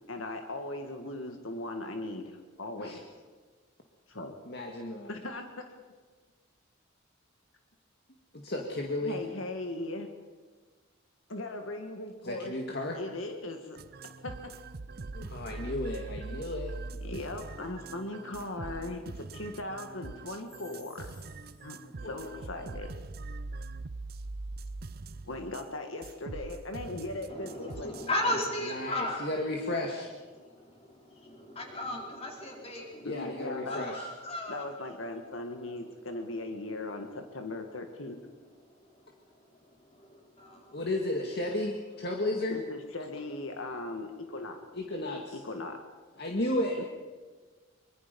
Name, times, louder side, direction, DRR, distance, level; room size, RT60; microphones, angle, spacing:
voice 1, 0.1-3.0 4.1-4.3 5.1-5.6 9.0-10.1 11.3-12.5 12.9-13.8 14.2-14.6 17.0-21.1 21.6-22.9 25.2-27.9 33.1-33.8 34.5-38.2 42.5-44.6 45.4-45.8 46.8-46.9, left 2 dB, 75° left, 4 dB, 1.9 m, -38 dB
voice 2, 4.4-5.1 8.3-9.2 12.2-13.0 15.1-16.7 22.0-22.4 28.7-30.1 33.0-34.1 40.7-42.6 44.7-45.4 46.2-46.8, left 1 dB, 50° left, 1 dB, 2.0 m, -33 dB
sound 1, 13.8-25.7 26.0-28.1 28.4-28.5, right 3 dB, 50° right, 0.6 m, -42 dB
voice 3, 27.3-29.9 30.3-35.0 35.6-35.9 37.6-37.7 38.6-40.8 43.2-43.3, left 1 dB, 30° left, 0 dB, 4.5 m, -37 dB
24.5 x 24.0 x 5.4 m, 1.4 s
head